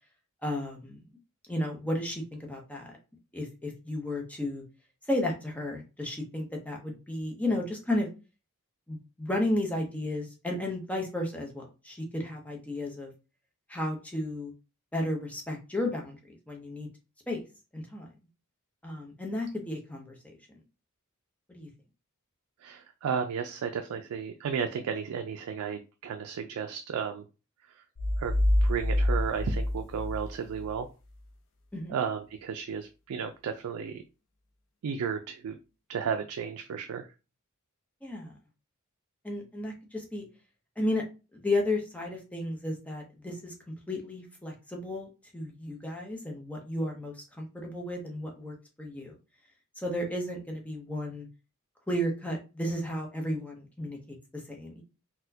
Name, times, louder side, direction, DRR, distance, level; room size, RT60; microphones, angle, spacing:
voice 1, 0.4-1.0 1.5-3.0 3.3-4.6 5.1-8.1 8.9-13.1 13.7-14.5 14.9-16.9 17.3-17.4 17.7-18.1 18.8-20.3 21.5-21.7 31.7-32.0 38.0-38.4 39.2-40.3 40.8-41.0 41.3-43.5 43.9-45.1 45.3-49.2 49.8-51.3 51.9-54.8, left 1 dB, 5° left, 0 dB, 0.7 m, -33 dB
voice 2, 22.6-27.2 28.2-28.3 28.6-30.9 31.9-34.0 34.8-35.6 35.9-37.1, right 7 dB, 85° right, 6 dB, 0.3 m, -33 dB
sound 1, 28.0-30.8, left 1 dB, 65° left, 0.5 m, -27 dB
4.1 x 2.1 x 2.7 m, 0.31 s
head